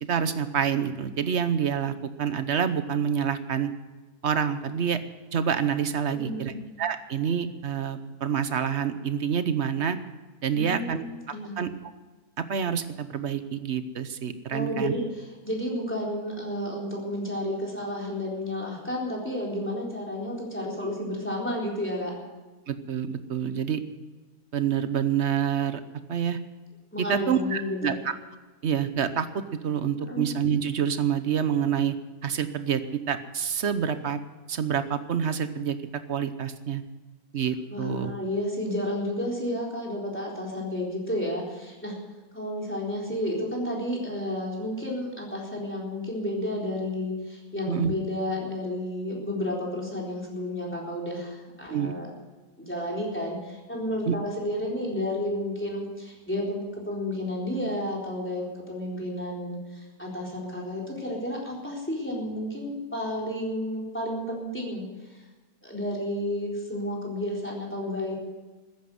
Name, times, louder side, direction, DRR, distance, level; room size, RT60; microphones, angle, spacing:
voice 1, 0.0-3.7 4.2-5.0 5.3-6.5 6.8-10.0 10.4-11.0 11.6-11.7 12.4-14.9 22.7-23.8 24.5-25.8 26.1-26.4 27.0-27.9 28.6-31.9 32.2-34.2 34.5-35.8 36.1-36.8 37.3-38.1 47.7-47.9 51.7-51.9 54.1-54.2, right 8 dB, 50° right, 11 dB, 1.0 m, -27 dB
voice 2, 6.1-6.6 10.5-11.6 14.5-15.0 15.4-22.1 26.9-28.0 30.1-30.2 37.7-41.9 42.3-52.1 52.6-65.2 65.6-68.1, left 1 dB, 5° left, -3 dB, 3.9 m, -31 dB
14.0 x 10.5 x 7.7 m, 1.3 s
omnidirectional pair, 1.8 m